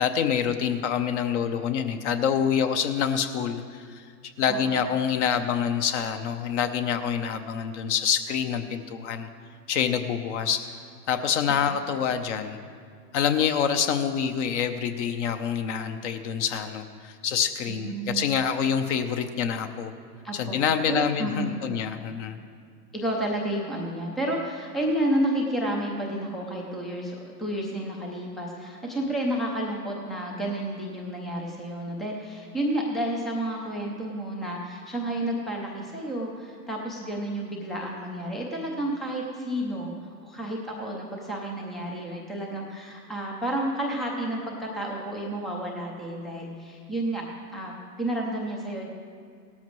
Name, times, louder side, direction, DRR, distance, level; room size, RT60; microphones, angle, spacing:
voice 1, 0.0-4.1 4.4-9.3 9.7-10.6 11.1-12.6 13.1-19.9 20.3-22.4, left 8 dB, 45° left, 7 dB, 0.8 m, -26 dB
voice 2, 4.5-4.9 11.7-11.8 17.7-18.2 20.2-20.6 20.9-21.6 22.9-39.9 40.2-47.2 47.5-47.7 48.0-48.8, right 1 dB, ahead, -1 dB, 0.4 m, -31 dB
17.0 x 13.0 x 3.1 m, 2.2 s
hypercardioid pair, 125°, 49 cm